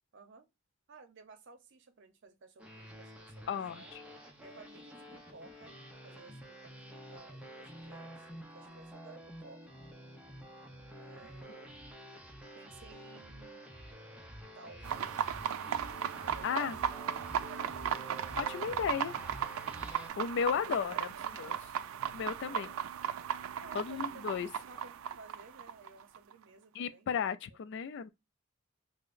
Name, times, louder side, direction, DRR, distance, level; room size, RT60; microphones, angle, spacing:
voice 1, 0.1-0.5 0.9-3.9 4.4-5.8 6.0-9.6 10.9-11.8 12.5-13.7 14.5-17.1 17.5-18.0 20.5-22.0 22.4-22.8 23.6-24.2 24.5-27.1, right 4 dB, 65° right, 0.7 m, -55 dB
sound 1, 2.6-20.1, equal, 5° right, 0.7 m, -49 dB
voice 2, 3.5-4.0 16.4-16.8 18.4-19.1 19.9-21.1 21.4-21.5 22.1-22.7 23.7-24.5 26.7-28.1, left 7 dB, 60° left, 0.4 m, -34 dB
sound 2, 14.8-26.3, right 9 dB, 80° right, 0.3 m, -36 dB
5.5 x 2.1 x 2.5 m
head